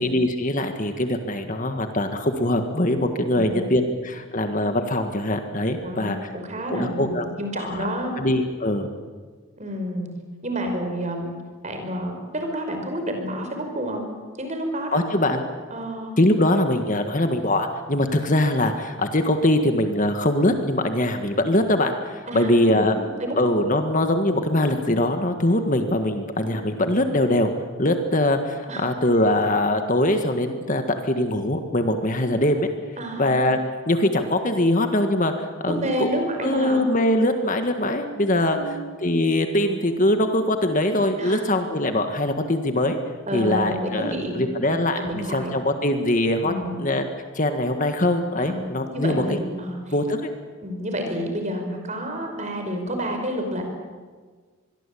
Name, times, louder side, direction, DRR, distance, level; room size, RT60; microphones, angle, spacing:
voice 1, 0.0-6.3 6.7-7.9 8.2-8.9 14.9-15.4 16.2-23.0 23.3-27.5 27.8-32.7 33.2-33.6 33.9-36.1 36.4-43.0 43.3-46.5 46.8-47.1 47.3-49.2 49.9-50.3, left 1 dB, 35° left, 6 dB, 1.7 m, -22 dB
voice 2, 3.3-3.7 5.8-8.2 9.6-10.1 10.4-11.3 11.6-14.0 14.4-15.0 15.7-16.1 22.3-23.4 26.4-26.9 28.7-28.9 33.0-33.3 35.7-36.8 38.5-38.8 41.2-41.4 43.3-44.4 44.7-45.5 46.4-46.8 48.4-48.7 48.9-49.9 50.6-53.6, equal, 35° right, 4 dB, 5.2 m, -29 dB
26.0 x 22.0 x 8.6 m, 1.5 s
head